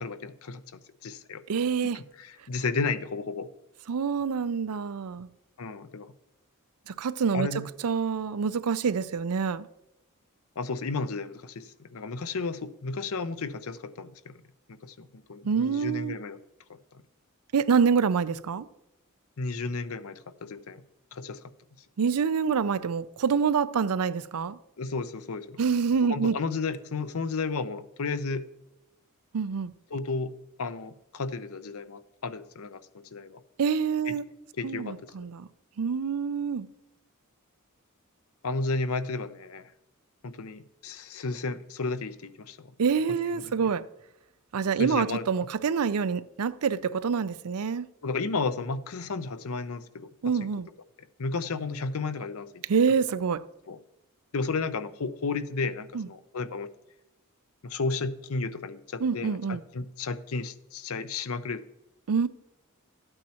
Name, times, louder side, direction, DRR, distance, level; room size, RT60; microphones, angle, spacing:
voice 1, 0.0-1.4 1.9-3.5 5.6-6.1 7.3-7.7 10.6-14.4 14.8-16.4 16.7-17.0 19.4-20.8 21.1-21.4 24.8-25.6 26.1-28.5 29.9-30.3 30.6-33.4 34.1-34.2 34.6-35.1 38.4-39.7 40.2-42.7 43.3-43.7 44.8-45.3 48.0-50.1 50.4-50.5 51.2-52.6 53.7-53.8 54.3-56.7 57.6-61.6, left 4 dB, 70° left, 0.6 m, -33 dB
voice 2, 1.5-2.0 3.9-5.3 6.9-7.5 7.8-9.7 15.4-16.1 17.5-18.7 22.0-24.6 25.6-26.3 29.3-29.7 33.6-34.2 34.6-35.5 35.8-36.7 42.8-43.8 44.5-47.9 50.2-50.7 52.7-53.4 55.9-56.1 59.0-59.6 62.1-62.3, right 6 dB, 80° right, 0.5 m, -26 dB
12.5 x 8.9 x 2.9 m
head